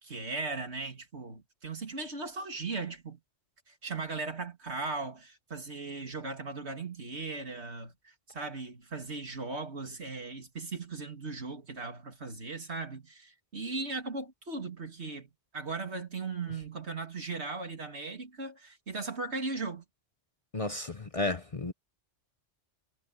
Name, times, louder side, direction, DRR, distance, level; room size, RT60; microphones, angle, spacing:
voice 1, 0.0-3.2 3.7-19.8, right 3 dB, 65° right, 2.9 m, -38 dB
voice 2, 20.5-21.7, left 2 dB, 30° left, 0.9 m, -33 dB
omnidirectional pair, 1.2 m